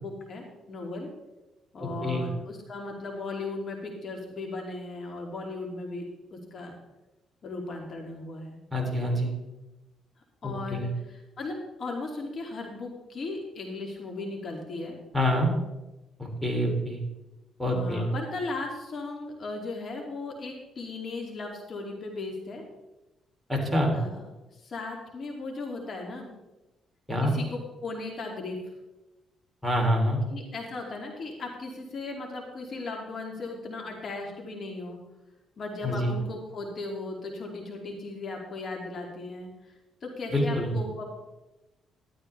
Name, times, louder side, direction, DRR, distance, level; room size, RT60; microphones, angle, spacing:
voice 1, 0.0-1.1 1.7-6.0 6.3-6.8 7.4-8.6 10.4-15.0 17.6-22.6 23.9-24.2 24.5-26.3 27.2-28.6 30.3-35.0 35.6-39.5 40.0-41.1, left 3 dB, 50° left, 0 dB, 2.6 m, -37 dB
voice 2, 1.8-2.3 8.7-9.3 10.4-10.9 15.1-15.5 16.2-17.0 17.6-18.1 23.5-23.9 27.1-27.3 29.6-30.2 35.8-36.2 40.3-40.7, equal, 5° right, -1 dB, 3.2 m, -26 dB
12.5 x 12.0 x 3.4 m, 1.0 s
cardioid pair, 90°, 0 cm